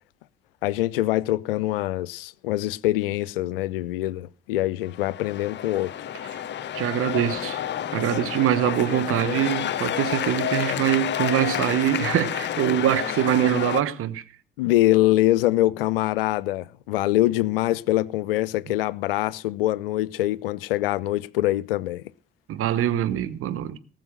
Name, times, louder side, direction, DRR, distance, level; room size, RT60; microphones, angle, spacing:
voice 1, 0.6-5.9 14.6-22.0, left 16 dB, 70° left, 0.5 m, -24 dB
sound 1, 4.9-13.8, left 10 dB, 40° left, 0.8 m, -29 dB
voice 2, 6.7-7.6 7.9-14.2 22.5-23.8, right 11 dB, 45° right, 1.2 m, -24 dB
18.5 x 6.4 x 6.5 m
figure-of-eight pair, 50°, 29 cm